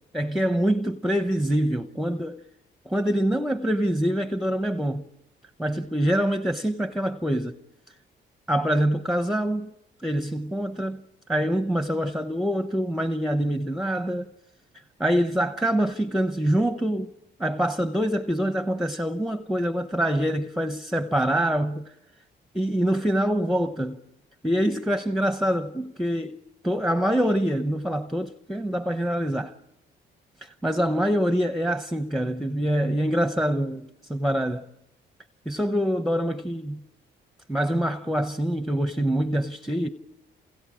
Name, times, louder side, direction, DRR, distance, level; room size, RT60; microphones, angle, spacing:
voice 1, 0.1-2.4 2.9-5.0 5.6-7.6 8.5-9.7 10.0-11.0 11.3-14.3 15.0-17.1 17.4-21.9 22.5-24.0 24.4-26.4 26.6-29.5 30.4-34.6 35.5-36.8 37.5-39.9, equal, ahead, 0.8 m, -25 dB
29.5 x 28.5 x 4.9 m
cardioid pair, 90°, 20 cm